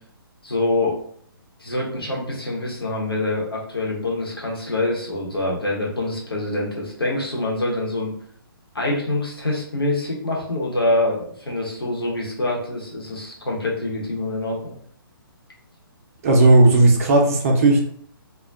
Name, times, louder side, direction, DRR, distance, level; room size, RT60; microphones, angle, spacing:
voice 1, 0.4-1.0 1.6-8.1 8.7-14.7, left 2 dB, 80° left, -3 dB, 0.9 m, -25 dB
voice 2, 16.2-17.8, right 2 dB, 40° right, 1 dB, 0.5 m, -14 dB
2.3 x 2.2 x 2.5 m, 0.62 s
figure-of-eight pair, 130°, 12 cm